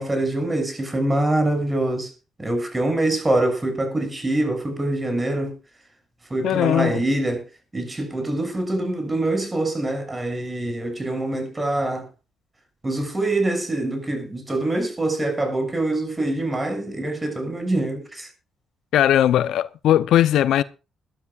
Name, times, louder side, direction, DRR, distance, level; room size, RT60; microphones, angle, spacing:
voice 1, 0.0-2.1 2.4-5.6 6.3-7.5 7.7-12.1 12.8-18.3, right 1 dB, 20° right, 6.8 m, -24 dB
voice 2, 6.4-7.0 18.9-20.6, left 11 dB, 80° left, 0.7 m, -19 dB
22.0 x 12.5 x 2.5 m
cardioid pair, 90°, 0 cm